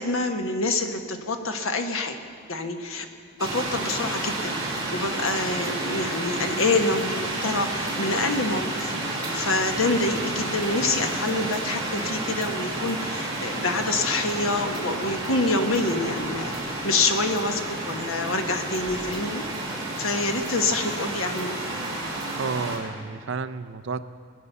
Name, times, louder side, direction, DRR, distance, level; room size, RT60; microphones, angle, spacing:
voice 1, 0.0-2.2 2.5-3.1 3.4-19.4 20.0-21.7, left 2 dB, 85° left, 5 dB, 1.4 m, -27 dB
sound 1, 3.4-22.8, right 2 dB, 20° right, 4.1 m, -30 dB
voice 2, 22.4-24.0, right 4 dB, 65° right, 12 dB, 0.6 m, -31 dB
20.0 x 9.7 x 6.9 m, 2.4 s
head